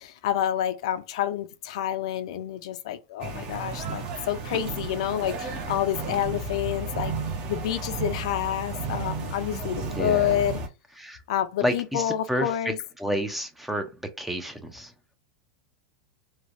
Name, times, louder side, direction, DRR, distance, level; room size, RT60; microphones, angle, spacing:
voice 1, 0.0-7.1 7.5-10.6 11.3-12.8, left 11 dB, 70° left, 0.5 m, -28 dB
sound 1, 3.2-10.7, right 3 dB, 35° right, 0.8 m, -33 dB
voice 2, 10.0-10.4 11.0-11.2 11.6-13.9 14.2-14.9, equal, 5° right, 0.5 m, -30 dB
3.1 x 2.2 x 2.5 m
supercardioid pair, 140°, 3 cm